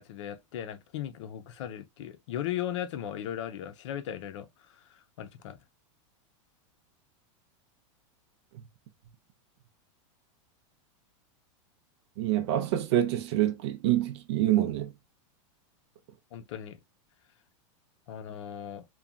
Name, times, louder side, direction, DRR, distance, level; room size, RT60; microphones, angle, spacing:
voice 1, 0.0-5.6 16.3-16.8 18.1-18.9, left 10 dB, 65° left, 0.6 m, -37 dB
voice 2, 12.2-14.9, right 13 dB, 60° right, 0.6 m, -26 dB
3.0 x 2.2 x 2.4 m
supercardioid pair, 165°, 16 cm